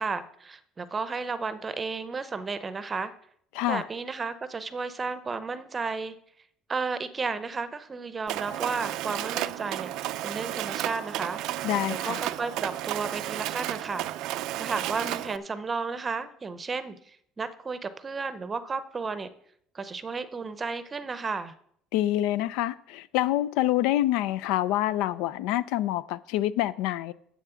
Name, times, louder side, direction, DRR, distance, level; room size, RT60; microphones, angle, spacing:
voice 1, 0.0-3.1 3.7-6.1 6.7-14.1 14.6-19.3 19.7-21.5, right 4 dB, 20° right, 0.7 m, -33 dB
Mechanisms, 8.3-15.4, right 15 dB, 65° right, 0.4 m, -33 dB
voice 2, 11.6-12.2 21.9-27.1, left 14 dB, 80° left, 0.4 m, -26 dB
7.5 x 7.1 x 6.9 m
cardioid pair, 145°, 0 cm